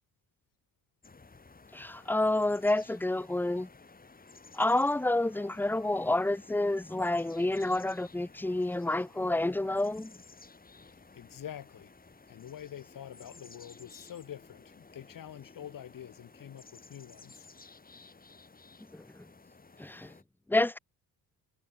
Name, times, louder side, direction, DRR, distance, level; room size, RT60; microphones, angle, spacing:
sound 1, 1.0-20.2, left 4 dB, 20° left, 2.3 m, -55 dB
voice 1, 1.7-3.7 4.5-10.1 18.9-19.2 19.8-20.1 20.5-20.8, left 2 dB, 5° left, 0.6 m, -29 dB
voice 2, 11.1-11.9 12.3-17.5, left 10 dB, 55° left, 1.6 m, -46 dB
cardioid pair, 85°, 39 cm